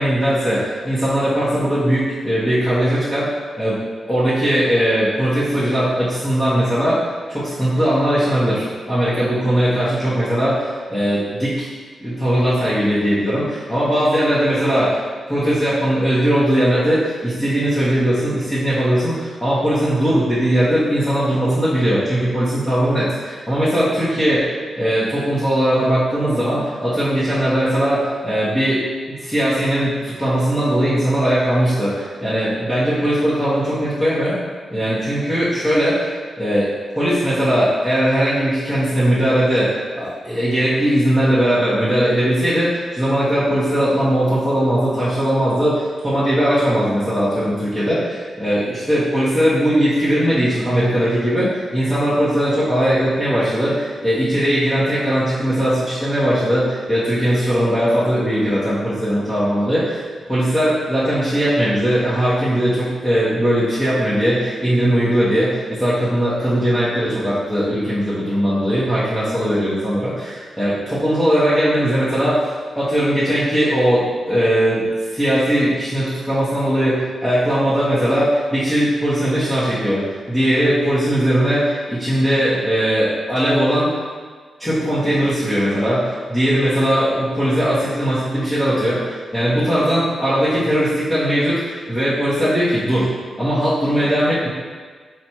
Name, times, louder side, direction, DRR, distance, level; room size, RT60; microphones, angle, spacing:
voice 1, 0.0-3.3 3.6-3.8 4.1-7.0 7.3-11.7 12.0-15.0 15.3-28.8 29.1-34.3 34.7-36.7 36.9-60.0 60.3-74.8 75.1-80.0 80.3-83.9 84.6-93.1 93.4-94.5, equal, 10° left, -13 dB, 1.1 m, -19 dB
4.6 x 2.5 x 4.3 m, 1.5 s
wide cardioid pair, 115°, 0 cm